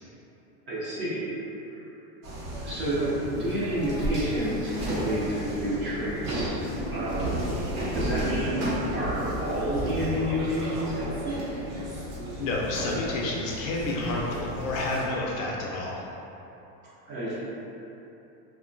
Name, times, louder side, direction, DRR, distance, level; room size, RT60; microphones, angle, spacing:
voice 1, 0.7-1.3 1.7-1.8 2.6-6.5 6.9-7.6 7.9-8.6 8.9-11.4 17.1-17.3, right 1 dB, 25° right, -9 dB, 0.3 m, -29 dB
sound 1, 2.2-15.1, equal, 60° right, 0.8 m, -33 dB
voice 2, 12.4-16.1, left 2 dB, 55° left, -3 dB, 0.5 m, -29 dB
2.7 x 2.1 x 2.5 m, 3.0 s
supercardioid pair, 125°, 48 cm